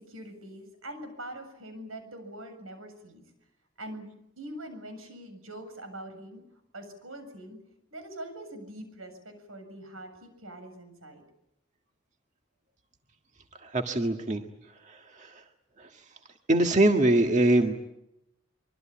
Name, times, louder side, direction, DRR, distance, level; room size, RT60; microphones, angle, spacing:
voice 1, 0.0-3.2 3.8-6.4 6.7-7.6 7.9-11.2, right 1 dB, 85° right, 8 dB, 7.4 m, -43 dB
voice 2, 13.6-14.4 14.9-15.4 15.8-15.9 16.5-17.7, right 1 dB, 35° right, 4 dB, 1.8 m, -23 dB
25.0 x 24.0 x 8.8 m, 0.84 s
head